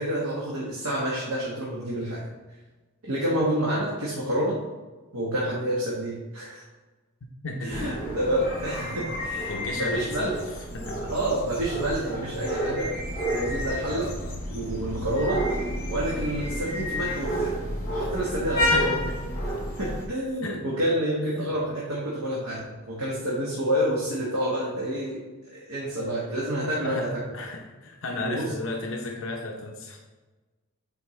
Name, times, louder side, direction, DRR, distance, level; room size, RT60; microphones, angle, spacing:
voice 1, 0.0-2.2 3.0-4.6 5.1-6.6 7.6-10.3 11.1-12.9 13.2-14.1 14.5-15.4 15.9-17.5 17.9-18.9 19.8-22.6 22.9-25.2 25.5-27.2 28.2-28.4, right 1 dB, 80° right, -6 dB, 1.3 m, -28 dB
voice 2, 7.4-8.0 8.9-9.0 9.5-10.4 10.7-11.0 13.9-14.4 18.6-19.2 20.4-20.6 21.4-21.6 26.8-30.0, left 2 dB, 60° left, 1 dB, 0.7 m, -34 dB
sound 1, 7.7-20.0, equal, 40° left, 2.2 m, -30 dB
8.2 x 4.4 x 3.2 m, 1.2 s
head